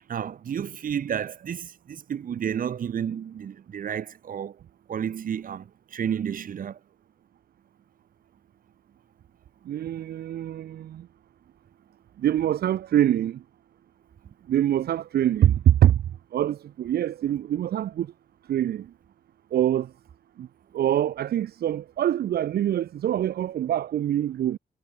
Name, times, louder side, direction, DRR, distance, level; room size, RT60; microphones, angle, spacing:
voice 1, 0.1-4.6 4.9-6.8, right 8 dB, 60° right, 1.3 m, -31 dB
voice 2, 9.6-11.1 12.2-13.4 14.5-16.0 16.3-18.1 18.5-18.9 19.5-19.9 20.4-20.5 20.7-24.6, right 11 dB, 75° right, 0.6 m, -24 dB
wide cardioid pair, 155°, 16 cm